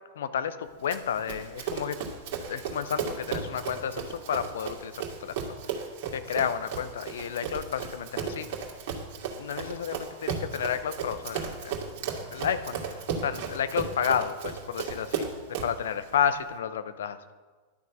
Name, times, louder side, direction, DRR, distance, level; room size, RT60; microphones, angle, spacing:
voice 1, 0.2-2.0 2.5-5.6 6.1-8.5 9.4-11.8 12.3-15.3 15.6-17.3, left 8 dB, 60° left, 11 dB, 0.8 m, -31 dB
Run, 0.9-15.8, right 6 dB, 50° right, 2.2 m, -35 dB
11.0 x 6.6 x 8.3 m, 1.4 s
figure-of-eight pair, 90°, 0 cm